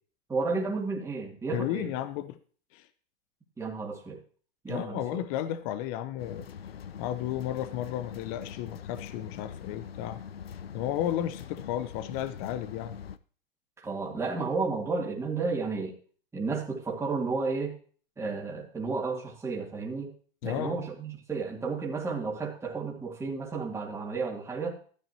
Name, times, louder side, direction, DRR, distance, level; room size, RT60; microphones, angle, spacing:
voice 1, 0.3-1.9 3.6-4.2 4.6-5.2 13.8-16.0 16.3-17.7 18.2-20.1 20.4-24.8, right 4 dB, 10° right, -2 dB, 2.4 m, -32 dB
voice 2, 1.5-2.4 2.7-2.9 4.7-6.5 7.0-10.2 10.7-13.0 20.4-20.8, left 12 dB, 40° left, 13 dB, 0.9 m, -33 dB
sound 1, 6.2-13.2, left 8 dB, 90° left, 0.7 m, -43 dB
13.5 x 8.8 x 2.8 m, 0.42 s
hypercardioid pair, 120°, 29 cm